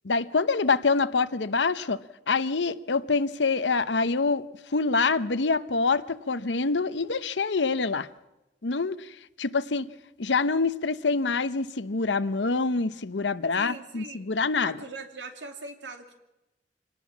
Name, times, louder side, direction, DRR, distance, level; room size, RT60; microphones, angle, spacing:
voice 1, 0.0-4.5 4.7-8.1 8.6-9.1 9.4-9.9 10.2-14.8, left 4 dB, 75° left, 13 dB, 0.9 m, -26 dB
voice 2, 13.6-14.3 14.6-16.1, right 3 dB, 85° right, 5 dB, 2.6 m, -41 dB
26.0 x 18.5 x 7.2 m, 0.96 s
head